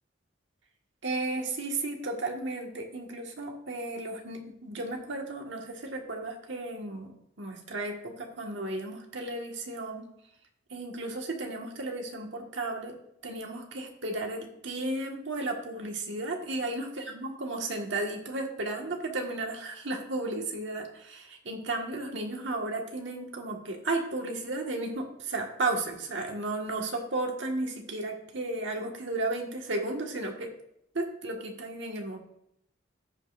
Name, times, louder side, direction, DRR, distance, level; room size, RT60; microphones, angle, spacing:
voice 1, 1.0-10.0 10.7-12.9 13.2-30.5 30.9-32.2, right 2 dB, 70° right, 2 dB, 1.5 m, -34 dB
15.5 x 5.3 x 2.5 m, 0.75 s
head